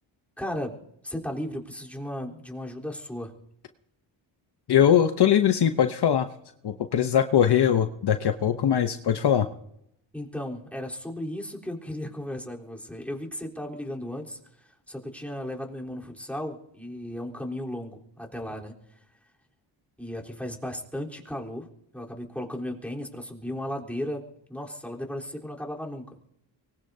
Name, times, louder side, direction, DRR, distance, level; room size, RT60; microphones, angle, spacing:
voice 1, 0.4-0.7 1.0-3.3 10.1-18.7 20.0-21.7 21.9-24.2 24.5-26.0, left 1 dB, 5° left, -2 dB, 3.8 m, -35 dB
voice 2, 4.7-6.3 6.6-9.5, left 9 dB, 55° left, 8 dB, 0.9 m, -21 dB
24.0 x 20.5 x 2.8 m, 0.76 s
cardioid pair, 80°, 47 cm